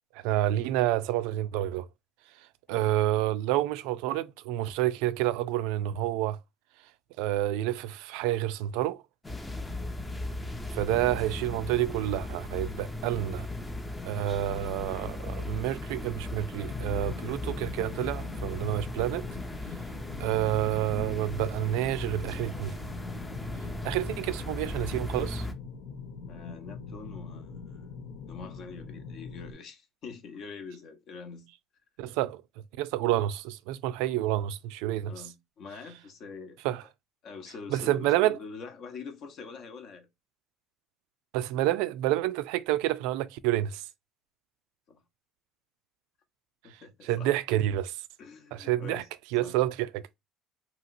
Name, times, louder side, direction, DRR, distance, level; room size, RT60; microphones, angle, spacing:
voice 1, 0.1-1.9 2.7-6.4 7.2-9.0 10.7-13.5 14.0-19.3 20.2-22.7 23.8-25.5 32.0-32.4 32.8-35.1 36.6-36.8 37.7-38.4 41.3-43.8 47.0-48.0 48.5-49.0 49.3-50.2, right 14 dB, 90° right, 0.3 m, -29 dB
sound 1, 9.2-25.5, left 2 dB, 10° left, 0.5 m, -37 dB
sound 2, 9.5-16.4, right 2 dB, 65° left, 1.1 m, -50 dB
sound 3, 16.6-29.5, left 5 dB, 90° left, 0.6 m, -43 dB
voice 2, 26.2-27.8 28.3-31.5 35.1-36.6 37.2-40.1 44.9-45.0 46.6-47.3 48.2-49.1 49.3-49.6, left 5 dB, 50° left, 0.7 m, -44 dB
2.9 x 2.8 x 2.5 m
cardioid pair, 135°, 0 cm